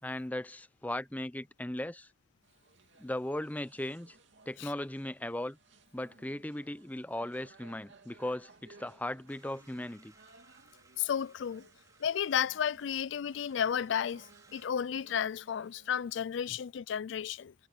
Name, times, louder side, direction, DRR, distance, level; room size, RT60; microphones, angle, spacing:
voice 1, 0.0-2.1 3.0-4.2 4.5-5.6 5.9-10.1, left 1 dB, 10° left, 0.6 m, -37 dB
sound 1, 2.4-16.5, right 3 dB, 75° right, 2.6 m, -61 dB
sound 2, 9.3-14.7, right 3 dB, 20° right, 4.7 m, -64 dB
voice 2, 11.0-11.7 12.0-17.5, left 8 dB, 75° left, 0.4 m, -33 dB
head